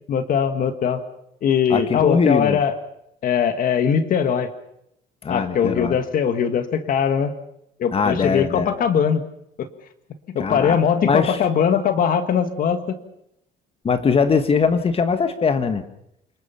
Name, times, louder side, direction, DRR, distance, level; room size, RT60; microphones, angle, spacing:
voice 1, 0.1-1.0 1.4-2.7 3.2-4.5 5.3-7.3 7.8-9.2 9.6-9.7 10.3-13.0, left 7 dB, 55° left, 9 dB, 1.7 m, -21 dB
voice 2, 1.7-2.6 5.2-6.0 7.9-8.7 10.4-10.8 11.0-11.4 13.8-15.8, left 5 dB, 35° left, 10 dB, 1.6 m, -21 dB
28.5 x 20.0 x 5.8 m, 0.77 s
cardioid pair, 110°, 17 cm